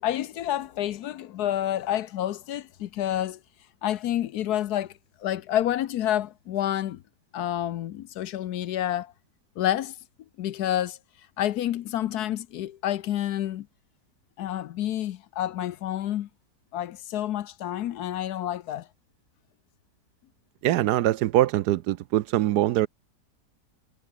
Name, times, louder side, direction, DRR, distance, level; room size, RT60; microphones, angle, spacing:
voice 1, 0.0-3.4 3.8-4.9 5.2-7.0 7.3-9.1 9.6-9.9 10.4-11.0 11.4-13.7 14.4-16.3 16.7-18.9, left 12 dB, 70° left, 1.2 m, -29 dB
voice 2, 20.6-22.9, right 14 dB, 75° right, 1.1 m, -23 dB
omnidirectional pair, 1.9 m